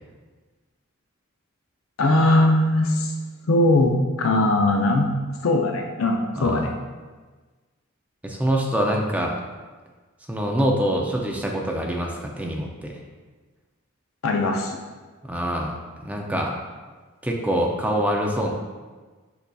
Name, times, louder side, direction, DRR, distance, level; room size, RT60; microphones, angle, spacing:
voice 1, 2.0-3.1 3.5-3.9 4.2-5.1 5.4-6.7 14.2-14.8, left 2 dB, 70° left, 3 dB, 0.5 m, -20 dB
voice 2, 6.4-6.7 8.2-9.3 10.3-13.0 15.2-15.8 16.0-16.5 17.2-18.5, equal, 5° right, 0 dB, 0.4 m, -25 dB
6.6 x 2.6 x 2.3 m, 1.3 s
head